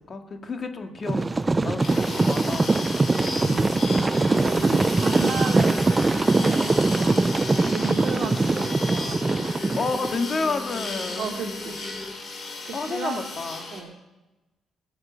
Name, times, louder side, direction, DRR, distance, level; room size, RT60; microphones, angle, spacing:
voice 1, 0.1-3.2 4.4-5.0 9.8-11.3 12.7-13.7, left 4 dB, 40° left, 5 dB, 2.0 m, -31 dB
Wild Horses Galopp, 1.1-10.2, right 3 dB, 20° right, 0.4 m, -22 dB
sound 1, 1.8-13.8, left 3 dB, 55° left, 4.9 m, -36 dB
voice 2, 3.4-3.7 4.4-5.8 6.2-9.6 11.2-11.8 12.6-13.3 13.7-13.9, right 5 dB, 60° right, 0 dB, 2.6 m, -34 dB
sound 2, 3.9-12.1, left 1 dB, 20° left, 2.1 m, -39 dB
20.0 x 7.9 x 8.1 m, 1.1 s
cardioid pair, 90°, 0 cm